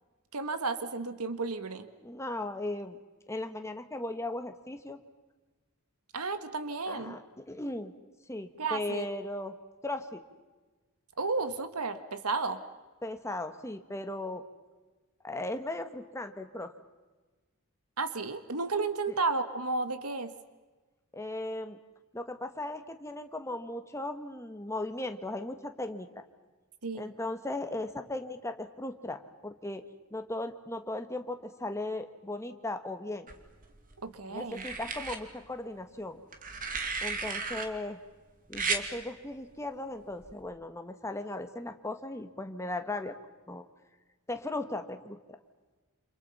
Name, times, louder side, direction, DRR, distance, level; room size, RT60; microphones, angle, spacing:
voice 1, 0.3-1.9 6.1-7.2 8.6-9.1 11.2-12.6 18.0-20.3 26.8-27.1 34.0-34.6, right 3 dB, 85° right, 10 dB, 1.6 m, -32 dB
voice 2, 2.0-3.0 3.3-5.0 6.9-7.9 8.3-9.5 9.8-10.2 13.0-14.4 15.2-16.7 19.1-19.2 21.1-21.8 22.1-26.1 26.9-29.8 30.1-33.3 34.3-36.2 37.0-38.0 38.5-43.2 43.5-43.6 44.3-45.2, left 2 dB, 15° left, 7 dB, 1.6 m, -37 dB
sound 1, 33.3-34.0 34.5-35.2 36.3-37.7 38.5-38.8 40.2-40.4, right 4 dB, 40° right, 2.5 m, -34 dB
29.0 x 28.0 x 5.7 m, 1.3 s
head